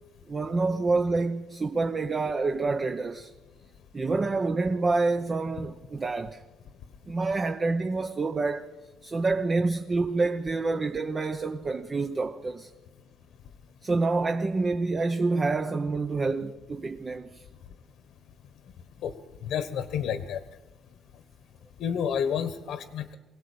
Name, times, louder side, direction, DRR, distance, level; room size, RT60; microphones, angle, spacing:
voice 1, 0.3-3.3 3.9-6.4 7.1-8.7 9.0-12.7 13.8-17.4, right 3 dB, 25° right, 0.9 m, -27 dB
voice 2, 19.5-20.4 21.8-23.2, left 8 dB, 65° left, 1.3 m, -29 dB
23.5 x 17.5 x 8.6 m
cardioid pair, 150°, 0 cm